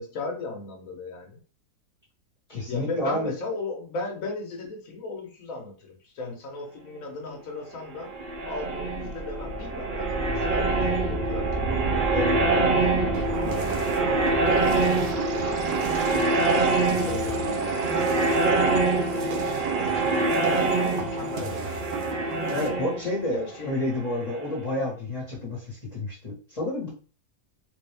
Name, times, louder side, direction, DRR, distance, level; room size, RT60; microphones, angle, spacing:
voice 1, 0.0-1.4 2.5-8.1 8.5-13.7 14.0-14.1 15.4-16.4 17.0-21.8 23.3-23.7, left 3 dB, 60° left, 1 dB, 1.3 m, -37 dB
voice 2, 2.5-3.3 22.5-23.4 23.6-26.9, left 1 dB, 25° left, -5 dB, 1.3 m, -30 dB
sound 1, 7.9-24.6, right 3 dB, 90° right, 0.4 m, -25 dB
sound 2, 13.1-22.7, right 4 dB, 70° right, 1.2 m, -38 dB
3.7 x 2.6 x 3.3 m, 0.37 s
omnidirectional pair, 1.7 m